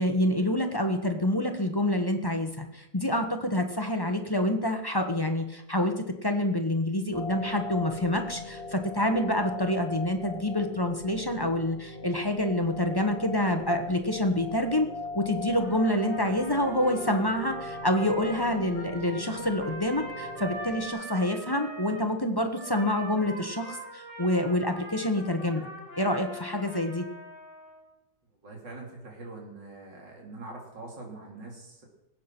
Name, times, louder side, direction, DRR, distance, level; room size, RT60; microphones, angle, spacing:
voice 1, 0.0-5.9 6.2-14.9 15.1-25.7 26.0-27.0, left 1 dB, 15° left, 5 dB, 1.0 m, -27 dB
sound 1, 7.1-20.9, left 3 dB, 35° left, 1.7 m, -39 dB
Trumpet, 15.6-22.1 22.5-27.9, right 1 dB, 10° right, 7.1 m, -42 dB
voice 2, 28.4-31.9, right 2 dB, 75° right, 0 dB, 3.8 m, -43 dB
20.0 x 8.5 x 6.1 m, 0.90 s
omnidirectional pair, 1.9 m